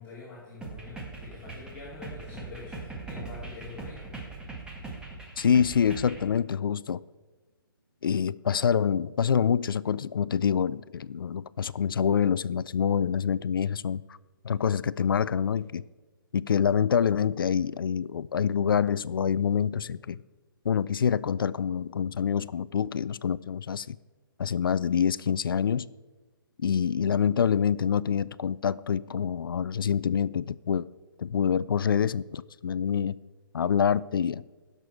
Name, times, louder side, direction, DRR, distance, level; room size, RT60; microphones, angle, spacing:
voice 1, 0.0-4.1, left 4 dB, 20° left, 3.0 m, -45 dB
sound 1, 0.6-6.3, right 3 dB, 5° right, 1.8 m, -40 dB
voice 2, 5.4-7.0 8.0-14.0 14.4-15.8 16.3-20.2 20.6-24.0 24.4-25.9 26.6-30.9 31.2-33.2 33.5-34.4, left 7 dB, 70° left, 0.4 m, -26 dB
17.0 x 6.7 x 4.7 m
figure-of-eight pair, 140°, 12 cm